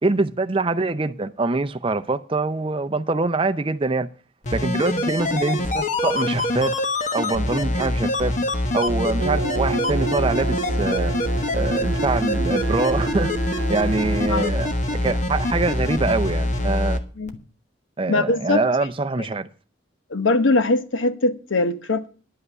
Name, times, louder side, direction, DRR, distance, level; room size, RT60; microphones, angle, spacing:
voice 1, 0.0-4.1 4.5-6.8 7.1-8.3 8.7-11.1 11.5-17.0 18.0-19.5, right 3 dB, 30° right, 0.5 m, -24 dB
sound 1, 4.4-17.0 17.3-17.4, left 1 dB, 40° left, 1.1 m, -24 dB
sound 2, 9.2-14.4, right 5 dB, 75° right, 1.1 m, -30 dB
voice 2, 18.1-18.6 19.2-19.3 20.1-22.1, left 2 dB, 80° left, 0.9 m, -21 dB
11.0 x 5.7 x 8.1 m
head